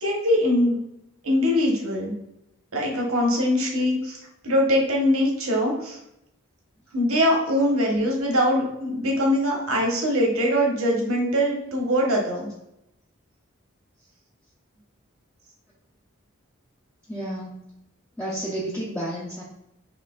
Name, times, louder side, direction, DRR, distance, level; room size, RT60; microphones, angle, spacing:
voice 1, 0.0-0.8 1.2-2.1 2.7-6.0 6.9-12.5, equal, 80° right, -1 dB, 1.2 m, -22 dB
voice 2, 17.1-17.6 18.2-19.4, right 1 dB, 5° left, -7 dB, 0.6 m, -31 dB
5.8 x 2.9 x 2.4 m, 0.83 s
head